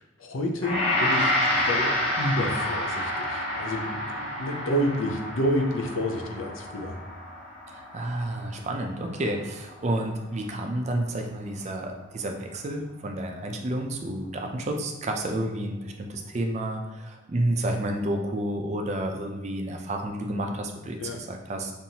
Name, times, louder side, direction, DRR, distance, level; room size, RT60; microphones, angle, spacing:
voice 1, 0.0-7.0 21.0-21.2, equal, 75° left, 2 dB, 0.6 m, -29 dB
Gong, 0.6-9.8, left 1 dB, 25° left, 1.1 m, -29 dB
voice 2, 7.7-21.7, right 1 dB, 35° right, 3 dB, 0.4 m, -30 dB
5.5 x 2.6 x 2.8 m, 1.1 s
head